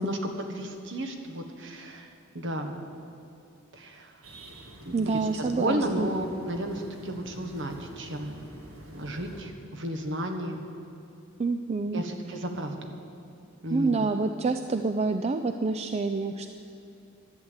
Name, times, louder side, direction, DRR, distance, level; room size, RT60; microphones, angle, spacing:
voice 1, 0.0-2.1 2.3-2.8 3.7-4.1 4.8-8.3 8.9-10.6 11.9-12.9 13.6-14.0, right 1 dB, 60° right, 4 dB, 1.4 m, -33 dB
sound 1, 4.2-9.4, equal, 75° right, 2.0 m, -47 dB
voice 2, 4.9-6.1 11.4-12.0 13.7-16.6, right 3 dB, 30° right, 8 dB, 0.4 m, -27 dB
11.5 x 11.0 x 8.1 m, 2.7 s
head